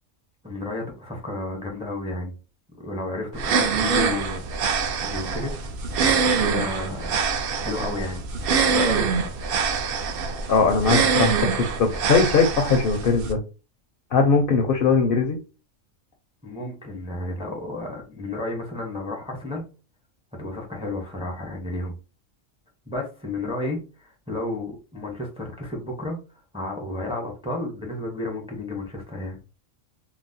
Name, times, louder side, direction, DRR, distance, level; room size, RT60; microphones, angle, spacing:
voice 1, 0.4-2.4 2.8-5.6 6.0-7.1 7.6-8.2 8.7-9.1 16.4-19.7 20.4-21.9 22.9-26.2 26.5-29.4, left 2 dB, 5° right, 1 dB, 0.5 m, -32 dB
sound 1, 3.3-13.3, right 5 dB, 60° right, 0.6 m, -24 dB
voice 2, 10.5-13.4 14.1-15.4, left 4 dB, 65° left, 4 dB, 0.6 m, -20 dB
3.9 x 2.0 x 2.6 m, 0.34 s
omnidirectional pair, 1.3 m